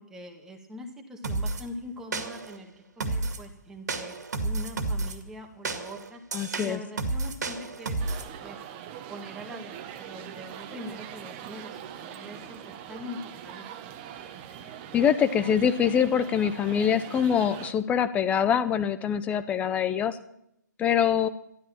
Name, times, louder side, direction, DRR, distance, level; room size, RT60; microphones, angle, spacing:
voice 1, 0.0-4.2 4.4-6.2 6.6-8.0 8.4-8.6 9.1-13.8, left 1 dB, 5° right, 2 dB, 1.6 m, -43 dB
sound 1, 1.2-1.6 2.1-2.6 3.0-3.4 3.9-5.2 5.6-8.3, right 3 dB, 60° right, 2.2 m, -31 dB
voice 2, 6.3-6.8 14.9-20.2 20.8-21.3, left 8 dB, 15° left, 13 dB, 0.7 m, -24 dB
sound 2, 8.0-17.7, right 9 dB, 30° right, 1.1 m, -42 dB
13.0 x 12.0 x 7.4 m, 0.76 s
figure-of-eight pair, 135°, 10 cm